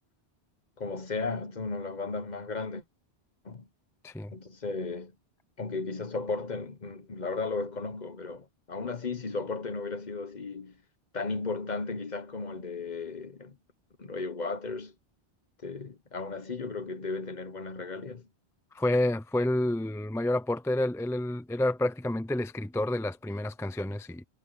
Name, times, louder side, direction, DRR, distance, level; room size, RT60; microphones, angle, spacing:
voice 1, 0.8-2.8 3.4-3.7 4.3-5.1 5.6-10.8 11.1-13.6 14.0-14.9 15.6-18.3, left 3 dB, 45° left, 1.1 m, -35 dB
voice 2, 18.7-24.2, left 1 dB, 5° left, 0.5 m, -29 dB
omnidirectional pair, 1.1 m